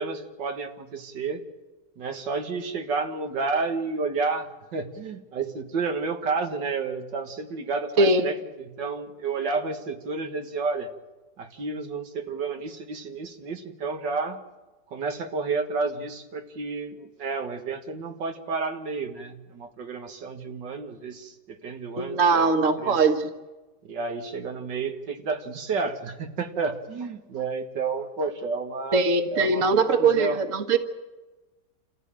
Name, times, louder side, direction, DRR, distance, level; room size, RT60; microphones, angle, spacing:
voice 1, 0.0-1.4 2.0-10.9 11.4-14.4 14.9-22.5 22.8-23.0 23.8-29.0 29.3-29.6 30.0-30.4, right 4 dB, 80° right, 5 dB, 2.3 m, -31 dB
voice 2, 22.0-23.3 28.9-30.8, right 4 dB, 50° right, 7 dB, 1.6 m, -21 dB
27.5 x 15.0 x 8.9 m, 1.2 s
omnidirectional pair, 1.9 m